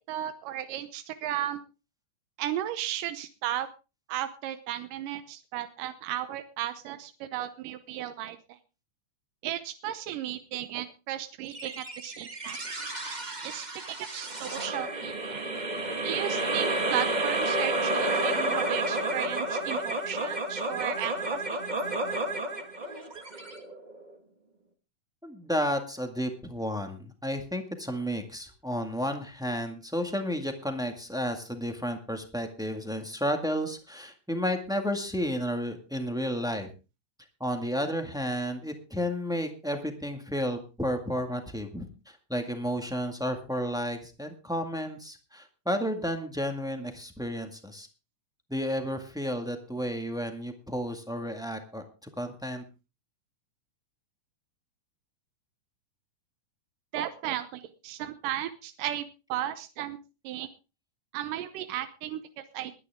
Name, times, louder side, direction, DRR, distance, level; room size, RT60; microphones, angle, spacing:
voice 1, 0.1-1.6 2.4-3.7 4.1-8.6 9.4-12.6 13.4-15.4 16.0-21.6 56.9-60.0 60.2-60.5 61.1-62.7, right 12 dB, 90° right, 10 dB, 2.5 m, -35 dB
sound 1, 11.5-24.1, right 2 dB, 30° right, 0.7 m, -31 dB
voice 2, 25.2-36.7 37.4-47.9 48.5-51.8 52.2-52.6, equal, ahead, 5 dB, 1.0 m, -32 dB
21.5 x 9.9 x 3.6 m, 0.31 s
omnidirectional pair, 3.7 m